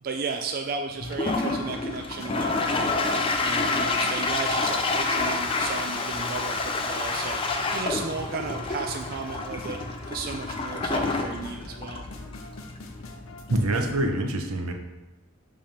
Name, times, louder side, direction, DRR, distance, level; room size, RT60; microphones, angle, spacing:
voice 1, 0.0-9.8 10.1-12.0, right 4 dB, 40° right, 4 dB, 0.3 m, -34 dB
sound 1, 1.0-14.0, left 2 dB, 70° left, 0.6 m, -46 dB
Toilet flush, 1.0-14.1, left 3 dB, 25° left, 0.4 m, -28 dB
voice 2, 13.5-14.7, right 1 dB, 80° right, 5 dB, 0.8 m, -25 dB
5.4 x 3.4 x 5.7 m, 1.0 s
head